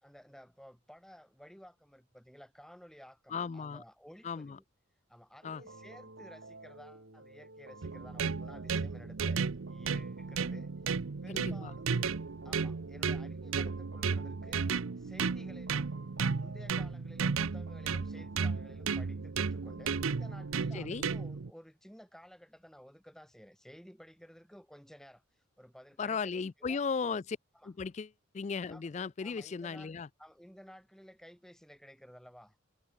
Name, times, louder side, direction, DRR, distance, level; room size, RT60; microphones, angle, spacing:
voice 1, 0.0-4.6 5.1-10.7 11.2-11.9 12.4-14.6 15.0-15.9 16.3-25.2 25.6-26.8 27.5-27.7 28.7-29.9 30.2-32.6, equal, ahead, 4.3 m, -54 dB
voice 2, 3.3-3.8 4.2-4.6 5.4-5.6 11.3-11.7 20.7-21.0 26.0-27.4 27.7-30.1, left 5 dB, 35° left, 0.3 m, -36 dB
sound 1, 5.4-21.3, right 2 dB, 65° right, 4.5 m, -53 dB
sound 2, 7.8-21.5, right 5 dB, 80° right, 0.7 m, -34 dB
head